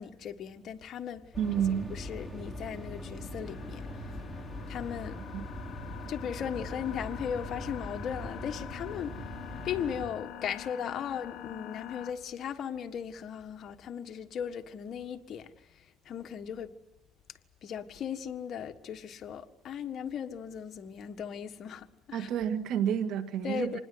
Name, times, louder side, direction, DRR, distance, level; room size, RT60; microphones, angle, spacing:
voice 1, 0.0-1.3 1.7-4.2 4.7-5.2 6.1-9.3 9.6-16.7 17.6-22.3 23.4-23.8, left 8 dB, 45° left, 1.6 m, -37 dB
sound 1, 1.3-10.1, left 1 dB, ahead, 3.9 m, -41 dB
voice 2, 1.4-1.9 5.3-5.4 22.1-23.8, right 9 dB, 60° right, 2.0 m, -30 dB
sound 2, 3.5-12.1, left 13 dB, 65° left, 1.9 m, -46 dB
26.5 x 20.0 x 8.0 m
cardioid pair, 125°, 0 cm